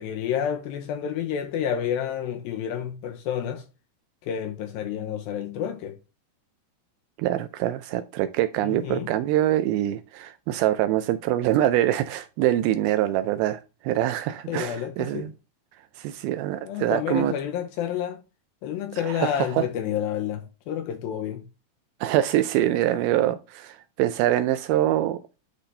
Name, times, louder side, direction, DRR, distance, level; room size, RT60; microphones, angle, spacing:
voice 1, 0.0-3.7 4.2-6.0 8.6-9.1 14.5-15.3 16.6-18.2 18.6-21.5, left 9 dB, 80° left, 2.3 m, -29 dB
voice 2, 7.2-15.3 16.0-17.3 19.1-19.6 22.0-25.2, right 13 dB, 85° right, 2.2 m, -24 dB
9.9 x 4.2 x 3.3 m
omnidirectional pair, 4.7 m